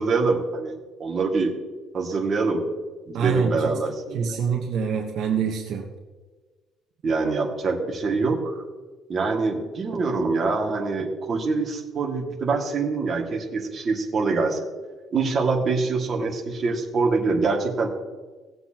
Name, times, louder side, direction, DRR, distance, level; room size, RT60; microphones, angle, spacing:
voice 1, 0.0-1.5 1.9-2.6 3.1-4.4 7.0-8.6 9.1-14.6 15.1-17.9, right 4 dB, 35° right, 0 dB, 2.2 m, -25 dB
voice 2, 3.1-3.7 4.1-5.9, right 6 dB, 65° right, 1 dB, 1.2 m, -25 dB
18.5 x 7.8 x 3.0 m, 1.3 s
cardioid pair, 130°, 0 cm